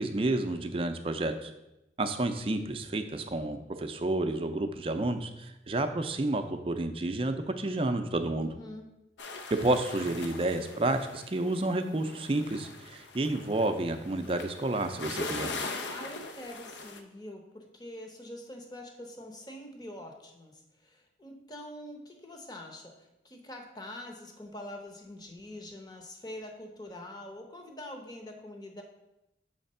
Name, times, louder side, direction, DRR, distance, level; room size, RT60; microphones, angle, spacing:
voice 1, 0.0-1.5 2.0-8.5 9.5-15.5, right 2 dB, 30° right, 7 dB, 0.5 m, -30 dB
voice 2, 8.4-8.9 15.9-28.8, left 1 dB, 20° left, 3 dB, 0.7 m, -45 dB
sound 1, 9.2-17.0, left 3 dB, 80° left, 0.6 m, -41 dB
6.5 x 3.4 x 5.4 m, 0.92 s
head